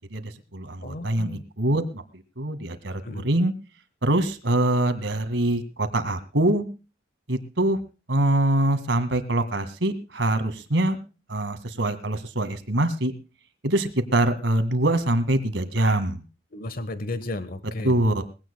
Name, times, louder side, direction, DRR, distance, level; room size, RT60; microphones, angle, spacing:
voice 1, 0.1-2.0 2.4-3.5 4.0-6.7 7.3-7.8 8.1-11.0 11.3-13.1 13.6-16.2 17.8-18.2, right 1 dB, 85° right, 9 dB, 2.0 m, -24 dB
voice 2, 0.8-1.4 3.0-3.3 16.5-18.0, left 2 dB, 55° left, 12 dB, 1.3 m, -33 dB
21.5 x 16.5 x 2.3 m, 0.32 s
head